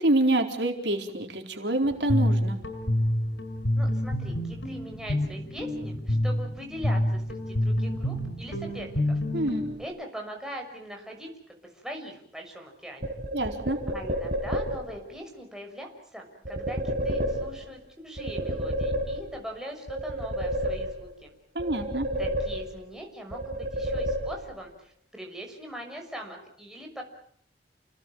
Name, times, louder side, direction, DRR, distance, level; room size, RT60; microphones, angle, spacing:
voice 1, 0.0-2.6 9.3-9.7 13.3-13.8 21.5-22.1, right 1 dB, 80° right, 3 dB, 4.2 m, -26 dB
Guitar, 1.8-9.8, left 1 dB, 85° left, 5.5 m, -28 dB
voice 2, 3.8-9.2 9.8-13.1 13.9-21.3 22.2-27.0, equal, 5° right, 1 dB, 6.1 m, -41 dB
sound 1, 13.0-15.0 16.5-17.8 18.2-19.5 19.9-21.2 21.6-23.0 23.3-24.7, equal, 50° right, 4.7 m, -30 dB
30.0 x 19.0 x 8.9 m, 0.65 s
head